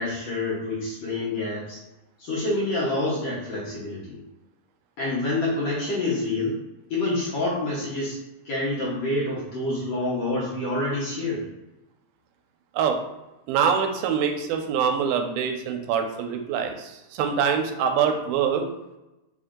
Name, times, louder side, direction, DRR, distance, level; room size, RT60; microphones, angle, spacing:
voice 1, 0.0-1.8 2.2-4.2 5.0-6.6 6.9-8.2 8.5-11.5, left 2 dB, 65° left, -8 dB, 1.8 m, -27 dB
voice 2, 13.5-18.7, right 7 dB, 85° right, 5 dB, 2.4 m, -24 dB
5.4 x 2.6 x 3.7 m, 1.0 s
omnidirectional pair, 4.2 m